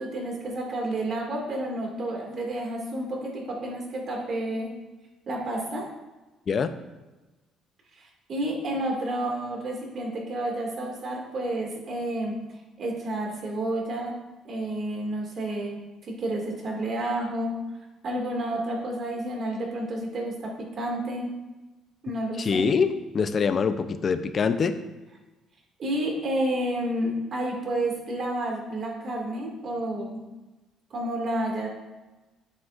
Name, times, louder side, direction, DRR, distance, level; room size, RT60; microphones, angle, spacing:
voice 1, 0.0-4.7 5.3-5.9 8.0-12.3 12.8-14.1 14.4-15.8 16.0-17.6 18.0-21.3 22.0-22.7 25.8-30.2 30.9-31.7, right 1 dB, 45° right, 0 dB, 2.1 m, -30 dB
voice 2, 22.4-24.8, left 5 dB, 40° left, 11 dB, 0.5 m, -24 dB
9.5 x 7.6 x 2.5 m, 1.1 s
cardioid pair, 115°, 0 cm